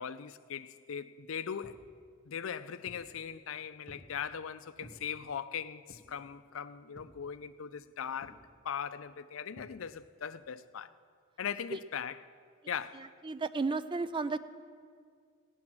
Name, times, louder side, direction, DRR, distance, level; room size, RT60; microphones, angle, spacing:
voice 1, 0.0-1.8 2.3-8.4 8.6-10.9 11.4-12.2 12.7-13.1, left 7 dB, 80° left, 0.5 m, -39 dB
sound 1, 1.6-1.9 2.5-3.1 3.9-4.2 4.8-5.0 5.9-6.2 7.0-7.2 8.2-8.5 9.6-9.8, right 1 dB, 65° right, 1.2 m, -54 dB
voice 2, 12.9-14.4, right 3 dB, 25° right, 0.4 m, -33 dB
16.5 x 9.6 x 6.1 m
head